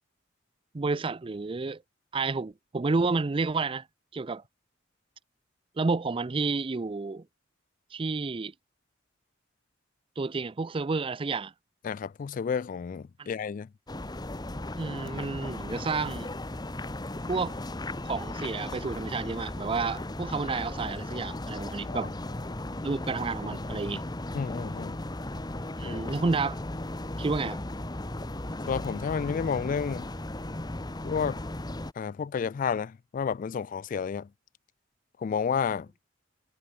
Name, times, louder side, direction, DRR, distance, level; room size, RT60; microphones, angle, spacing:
voice 1, 0.7-1.8 2.1-3.8 4.1-4.4 5.8-7.2 7.9-8.5 10.2-11.5 13.2-13.3 14.8-16.3 17.3-17.5 18.1-22.1 22.8-24.0 25.8-26.6 27.2-27.6, right 4 dB, 30° right, 0.4 m, -30 dB
voice 2, 11.8-13.7 21.9-22.1 24.3-25.0 25.8-26.0 28.7-30.1 31.0-31.4 32.0-34.3 35.2-35.9, left 6 dB, 45° left, 0.3 m, -31 dB
sound 1, 13.9-31.9, left 1 dB, 20° left, 1.1 m, -36 dB
head